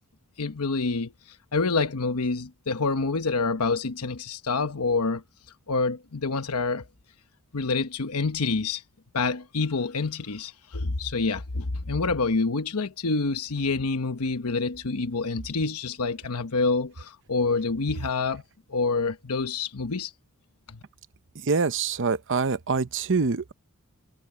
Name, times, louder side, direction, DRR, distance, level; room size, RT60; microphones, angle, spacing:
voice 1, 0.4-5.2 5.7-6.8 7.5-8.8 9.1-18.4 18.7-20.1 20.7-20.8, left 4 dB, 85° left, 1.0 m, -27 dB
voice 2, 21.4-23.5, right 4 dB, 55° right, 0.8 m, -25 dB
head